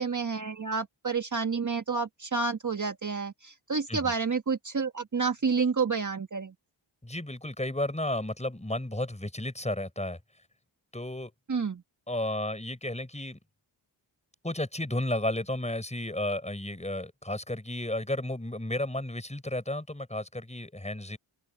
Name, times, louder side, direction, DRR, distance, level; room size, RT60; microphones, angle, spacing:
voice 1, 0.0-6.5 11.5-11.8, right 5 dB, 35° right, 1.5 m, -29 dB
voice 2, 7.0-10.2 10.9-11.3 12.1-13.4 14.4-21.2, left 1 dB, 15° left, 6.6 m, -33 dB
open air
cardioid pair, 65°, 49 cm